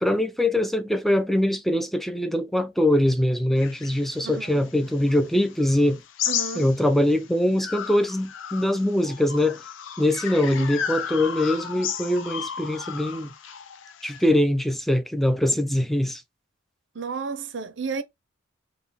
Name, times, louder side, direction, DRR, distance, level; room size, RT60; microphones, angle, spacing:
voice 1, 0.0-6.0 6.5-9.6 10.0-13.3 14.0-16.2, left 1 dB, ahead, 0.4 m, -23 dB
sound 1, 3.6-7.2 7.6-14.3, left 8 dB, 70° left, 0.5 m, -34 dB
voice 2, 4.2-4.6 6.3-6.7 10.5-10.7 17.0-18.0, right 5 dB, 60° right, 0.6 m, -32 dB
3.9 x 2.2 x 3.4 m
head